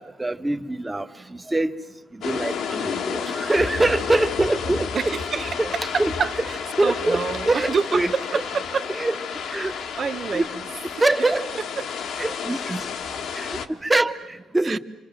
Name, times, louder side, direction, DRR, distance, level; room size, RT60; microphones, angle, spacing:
voice 1, 0.0-1.7 2.1-4.9 5.6-5.7 6.0-6.1 6.8-8.1 9.0-9.1 9.5-9.7 10.3-10.5 11.0-11.4 12.2-12.8 13.3-14.8, right 2 dB, 15° right, 7 dB, 1.6 m, -24 dB
sound 1, 2.2-13.7, left 6 dB, 75° left, 1.8 m, -31 dB
voice 2, 4.9-8.9 9.5-9.7 10.0-11.3 11.6-11.9 14.6-14.8, right 6 dB, 50° right, 12 dB, 1.1 m, -28 dB
28.0 x 26.5 x 7.6 m, 1.2 s
cardioid pair, 90°, 0 cm